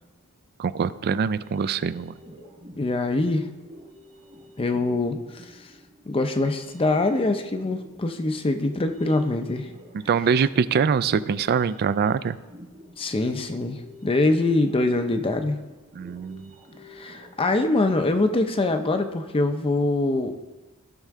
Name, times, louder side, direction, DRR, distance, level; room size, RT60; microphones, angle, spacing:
voice 1, 0.6-2.2 9.9-12.4 15.9-16.5, right 6 dB, 45° right, 16 dB, 0.3 m, -24 dB
sound 1, 1.4-18.2, equal, 60° right, 3.1 m, -48 dB
voice 2, 2.8-3.5 4.6-5.7 6.1-9.7 13.0-15.6 16.8-20.4, left 2 dB, 25° left, 6 dB, 0.5 m, -24 dB
16.0 x 5.6 x 3.6 m, 1.1 s
head